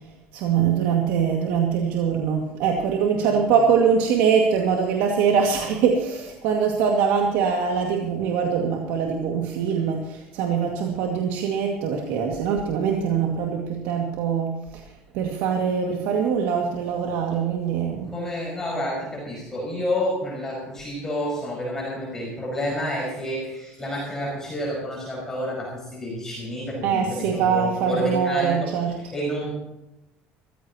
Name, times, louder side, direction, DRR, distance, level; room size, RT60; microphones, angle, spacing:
voice 1, 0.3-14.8 15.1-18.1 26.8-29.0, right 6 dB, 75° right, 1 dB, 2.2 m, -23 dB
voice 2, 18.1-29.5, equal, 10° left, -4 dB, 5.4 m, -29 dB
23.5 x 15.0 x 3.0 m, 0.93 s
cardioid pair, 165°, 4 cm